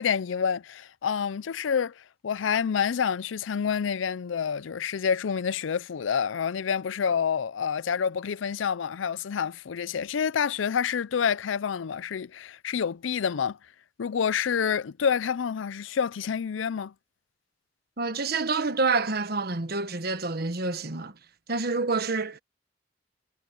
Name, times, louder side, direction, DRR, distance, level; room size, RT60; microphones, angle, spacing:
voice 1, 0.0-13.6 14.0-16.9, left 7 dB, 85° left, 0.5 m, -28 dB
voice 2, 18.0-21.1 21.5-22.4, right 3 dB, 55° right, 1.3 m, -27 dB
head